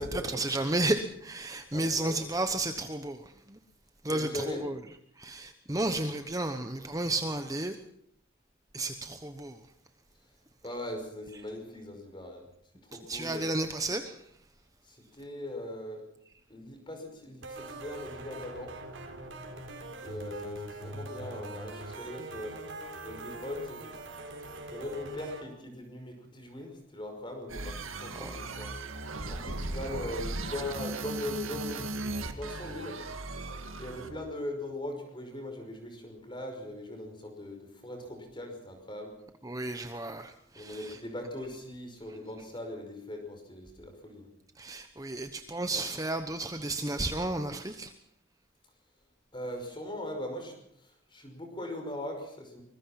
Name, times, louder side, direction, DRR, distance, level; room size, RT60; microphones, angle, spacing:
voice 1, 0.0-3.6 4.0-4.8 5.2-7.8 8.7-9.7 12.9-14.3 28.1-28.3 39.4-41.0 44.6-47.9, right 2 dB, 15° right, 8 dB, 1.0 m, -33 dB
voice 2, 1.7-2.2 4.1-4.6 10.6-12.5 12.8-13.4 14.8-16.1 16.5-18.7 20.0-22.6 23.0-24.0 24.7-28.7 29.3-31.9 32.3-33.0 33.8-39.2 40.6-44.3 49.3-52.6, left 1 dB, 25° left, 4 dB, 5.5 m, -40 dB
sound 1, 17.4-25.4, right 2 dB, 70° right, 4.1 m, -43 dB
sound 2, 27.5-34.2, right 2 dB, 90° right, 2.2 m, -37 dB
24.5 x 21.5 x 5.9 m, 0.69 s
head